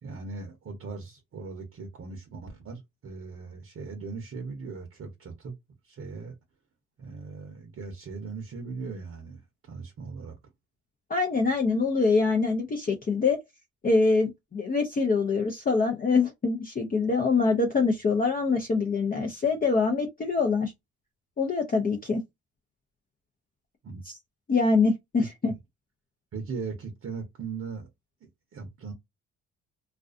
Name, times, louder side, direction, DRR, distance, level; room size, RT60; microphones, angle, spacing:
voice 1, 0.0-5.6 5.8-6.4 7.0-10.4 23.8-24.0 25.2-25.5 26.3-27.9 28.5-28.9, right 4 dB, 45° right, 0.8 m, -39 dB
voice 2, 11.1-13.4 13.8-20.7 21.4-22.2 24.5-25.5, left 4 dB, 25° left, 0.6 m, -24 dB
2.4 x 2.3 x 2.4 m
supercardioid pair, 70°, 32 cm